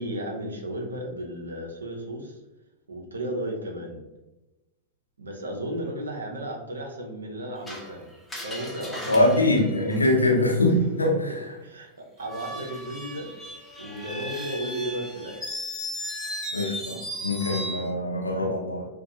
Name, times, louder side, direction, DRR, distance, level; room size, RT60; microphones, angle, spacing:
voice 1, 0.0-2.4 2.9-4.0 5.2-8.1 8.4-9.7 10.6-11.3 11.6-13.3 13.8-15.4, right 1 dB, 75° right, 1 dB, 0.5 m, -34 dB
Screech, 7.7-10.5 12.2-17.9, equal, 10° left, 0.7 m, -36 dB
voice 2, 9.1-11.4 16.5-18.9, left 1 dB, 85° left, -2 dB, 0.7 m, -23 dB
2.4 x 2.2 x 2.7 m, 1.0 s
figure-of-eight pair, 95°, 0 cm